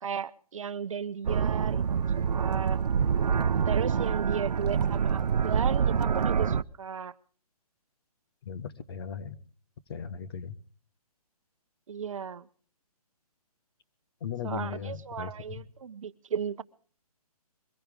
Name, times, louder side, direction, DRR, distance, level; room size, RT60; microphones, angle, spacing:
voice 1, 0.0-2.8 3.6-7.1 11.9-12.5 14.4-16.6, right 7 dB, 55° right, 13 dB, 0.9 m, -35 dB
sound 1, 1.2-6.6, right 7 dB, 85° right, 0.7 m, -26 dB
voice 2, 8.4-9.4 9.9-10.6 14.2-15.6, left 7 dB, 40° left, 11 dB, 1.2 m, -37 dB
22.5 x 15.5 x 3.6 m, 0.42 s
hypercardioid pair, 165°, 20 cm